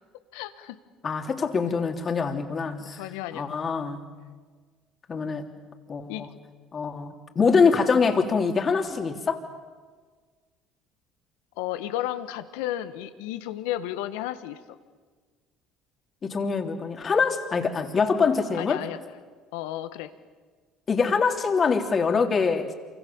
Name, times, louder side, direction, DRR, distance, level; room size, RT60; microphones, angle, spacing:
voice 1, 0.3-0.8 2.9-3.6 6.1-6.3 11.6-14.6 18.6-19.0 19.5-20.1, left 13 dB, 75° left, 11 dB, 1.6 m, -33 dB
voice 2, 1.0-3.0 3.3-4.0 5.1-5.5 5.9-6.3 6.7-9.4 16.2-18.8 20.9-22.7, left 5 dB, 40° left, 5 dB, 3.5 m, -24 dB
28.0 x 24.5 x 7.2 m, 1.5 s
hypercardioid pair, 65°, 0 cm